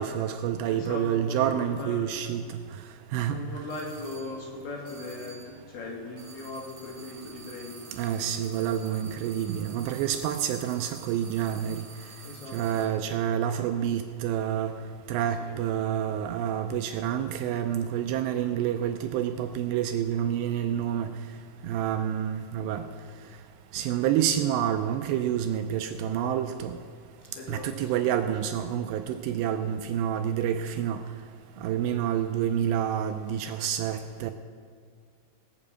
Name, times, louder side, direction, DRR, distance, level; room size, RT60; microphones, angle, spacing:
voice 1, 0.0-2.4 3.1-3.4 8.0-11.8 12.5-14.7 15.1-21.1 21.6-22.8 23.7-26.7 27.5-31.0 31.6-34.3, right 10 dB, 80° right, 7 dB, 2.6 m, -28 dB
voice 2, 0.7-2.0 3.3-7.8 8.0-8.5 12.2-12.6 15.4-15.6 27.2-28.3, left 2 dB, 75° left, -1 dB, 4.6 m, -39 dB
sound 1, 3.7-4.4 4.9-5.6 6.2-13.0, right 5 dB, 55° right, 3.3 m, -49 dB
17.5 x 6.9 x 8.5 m, 2.1 s
omnidirectional pair, 5.3 m